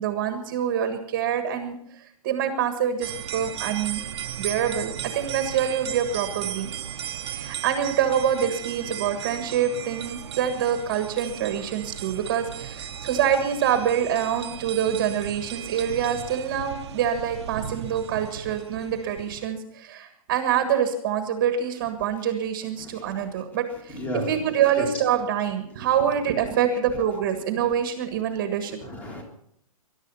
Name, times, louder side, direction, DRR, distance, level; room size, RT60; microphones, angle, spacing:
voice 1, 0.0-4.1 4.4-6.7 7.3-28.8, right 9 dB, 25° right, 7 dB, 1.5 m, -26 dB
sound 1, 3.0-19.5, right 9 dB, 45° right, 1.0 m, -36 dB
voice 2, 22.8-23.2 23.9-24.4 24.8-24.9 28.8-29.2, left 1 dB, 10° left, 4 dB, 2.0 m, -33 dB
21.0 x 11.5 x 5.6 m, 0.72 s
hypercardioid pair, 175°, 19 cm